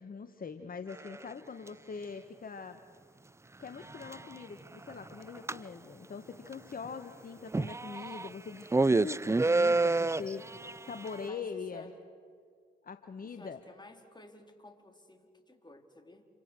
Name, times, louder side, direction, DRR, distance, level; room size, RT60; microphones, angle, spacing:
voice 1, 0.0-2.8 3.6-11.9 12.8-13.6, left 5 dB, 45° left, 9 dB, 1.4 m, -42 dB
sound 1, 1.0-1.2 3.9-4.2 4.9-5.1 5.3-5.6 6.5-6.6 6.8-6.9 7.5-8.3 8.7-11.2, right 3 dB, 15° right, 0.6 m, -28 dB
voice 2, 11.2-11.9 13.2-16.2, left 2 dB, 20° left, 5 dB, 4.1 m, -54 dB
28.5 x 25.0 x 6.4 m, 2.1 s
hypercardioid pair, 45°, 21 cm